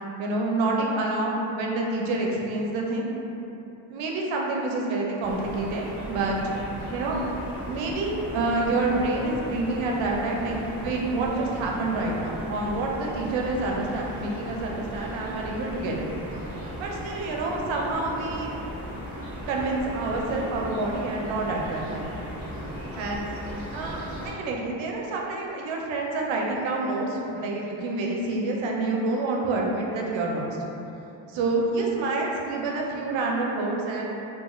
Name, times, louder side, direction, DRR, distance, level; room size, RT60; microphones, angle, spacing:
voice 1, 0.2-3.1 3.9-6.5 6.9-7.2 7.7-16.1 16.8-18.5 19.5-22.1 23.0-23.2 23.7-30.6 31.3-34.1, right 2 dB, 75° right, -1 dB, 0.6 m, -28 dB
sound 1, 5.2-24.3, equal, 15° right, 0.9 m, -37 dB
3.0 x 2.4 x 2.3 m, 2.9 s
cardioid pair, 145°, 46 cm